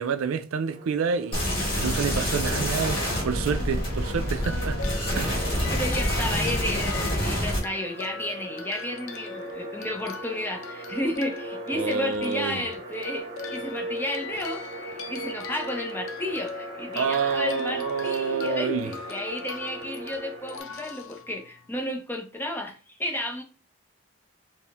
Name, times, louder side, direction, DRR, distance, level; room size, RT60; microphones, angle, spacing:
voice 1, 0.0-1.4 1.8-4.8 5.1-5.4 11.7-12.6 16.9-18.9, right 5 dB, 85° right, 0.4 m, -28 dB
sound 1, 0.6-20.6, right 2 dB, 30° right, 1.2 m, -40 dB
sound 2, 1.3-7.6, equal, 25° left, 1.3 m, -27 dB
sound 3, 4.4-21.8, left 5 dB, 80° left, 0.5 m, -41 dB
voice 2, 5.4-23.4, left 1 dB, 10° left, 0.6 m, -32 dB
4.3 x 2.1 x 3.4 m
head